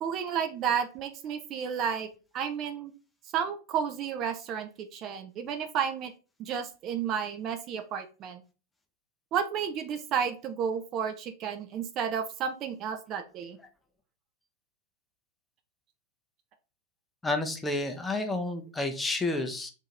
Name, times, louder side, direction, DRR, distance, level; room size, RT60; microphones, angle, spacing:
voice 1, 0.0-2.1 2.3-2.9 3.3-6.1 6.4-8.4 9.3-13.6, right 7 dB, 35° right, 7 dB, 0.4 m, -32 dB
voice 2, 17.2-19.7, left 2 dB, 10° left, 6 dB, 0.6 m, -30 dB
2.7 x 2.6 x 4.2 m, 0.33 s
figure-of-eight pair, 90°, 0 cm